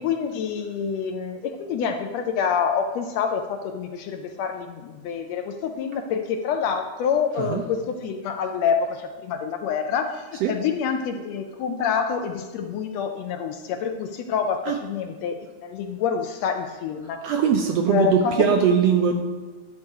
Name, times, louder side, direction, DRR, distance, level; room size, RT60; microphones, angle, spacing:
voice 1, 0.0-17.2 17.9-18.6, left 6 dB, 75° left, 6 dB, 1.6 m, -27 dB
voice 2, 17.2-19.1, right 7 dB, 80° right, 4 dB, 1.5 m, -20 dB
11.0 x 4.7 x 6.3 m, 1.3 s
omnidirectional pair, 3.4 m